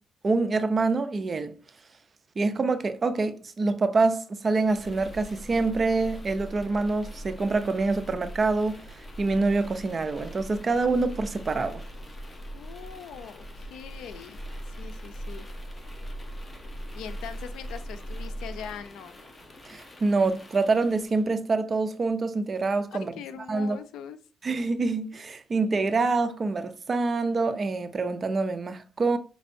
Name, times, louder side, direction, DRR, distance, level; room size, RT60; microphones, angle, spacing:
voice 1, 0.2-1.6 2.4-8.8 9.2-11.8 19.6-23.1 23.5-23.8 24.4-29.2, right 3 dB, 35° right, 0.6 m, -26 dB
sound 1, 4.6-21.3, equal, 25° left, 0.9 m, -41 dB
voice 2, 12.5-14.4 14.7-15.5 16.9-19.2 22.9-24.2, left 8 dB, 85° left, 0.5 m, -41 dB
5.3 x 3.2 x 2.6 m
cardioid pair, 90°, 0 cm